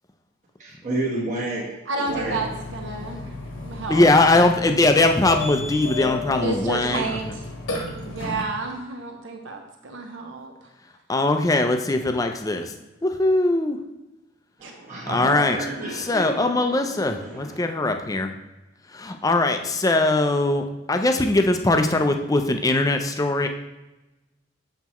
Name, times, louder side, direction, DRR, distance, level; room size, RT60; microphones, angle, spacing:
voice 1, 0.6-2.4 2.9-3.1 14.6-17.6, right 1 dB, 40° right, -5 dB, 1.2 m, -31 dB
voice 2, 1.9-4.1 6.0-7.3 8.0-10.5 14.6-14.7, right 3 dB, 65° right, 3 dB, 0.7 m, -31 dB
Burping eructation, 2.1-8.4, left 3 dB, 80° left, 1.3 m, -34 dB
voice 3, 3.9-7.3 11.1-12.7 13.0-13.8 15.1-15.6 15.9-18.3 18.9-23.5, left 2 dB, 15° left, 6 dB, 0.4 m, -21 dB
7.2 x 5.6 x 3.0 m, 1.0 s
head